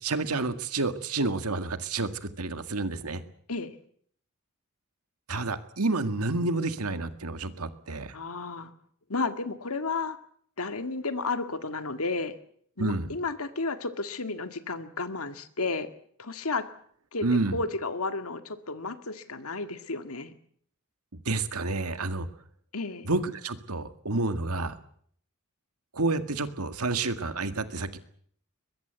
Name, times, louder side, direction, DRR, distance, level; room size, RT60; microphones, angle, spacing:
voice 1, 0.0-3.2 5.3-8.1 12.8-13.1 17.2-17.6 21.3-22.3 23.1-24.8 25.9-28.0, right 3 dB, 90° right, 10 dB, 1.9 m, -29 dB
voice 2, 8.1-8.7 9.1-10.2 10.6-12.4 12.8-15.9 16.2-16.7 17.1-17.3 17.5-20.3 22.7-23.1, left 3 dB, 75° left, 9 dB, 2.0 m, -32 dB
22.5 x 21.5 x 8.1 m, 0.63 s
head